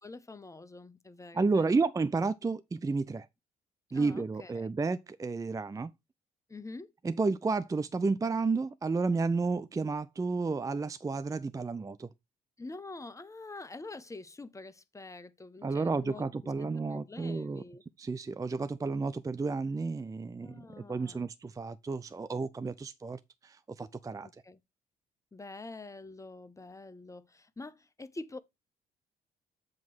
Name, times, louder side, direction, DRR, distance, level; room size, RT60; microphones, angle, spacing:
voice 1, 0.0-1.8 3.9-4.7 6.5-6.9 12.6-17.8 20.4-21.3 24.2-24.6 25.3-28.4, left 3 dB, 15° left, 0.9 m, -46 dB
voice 2, 1.3-3.3 3.9-5.9 7.0-12.1 15.6-17.6 18.0-24.3, right 4 dB, 20° right, 0.4 m, -31 dB
7.4 x 3.1 x 6.0 m
hypercardioid pair, 55°, 18 cm